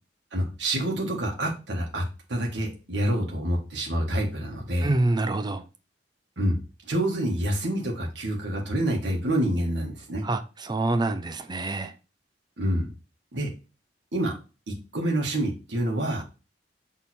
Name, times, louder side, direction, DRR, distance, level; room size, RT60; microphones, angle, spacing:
voice 1, 0.3-2.0 2.3-4.9 6.4-6.6 6.9-10.2 12.6-12.9 13.3-13.5 14.1-14.3 14.7-16.2, right 1 dB, 75° right, 1.5 m, -27 dB
voice 2, 4.8-5.6 10.2-11.9, right 2 dB, 25° right, 0.5 m, -26 dB
6.3 x 3.6 x 4.2 m
head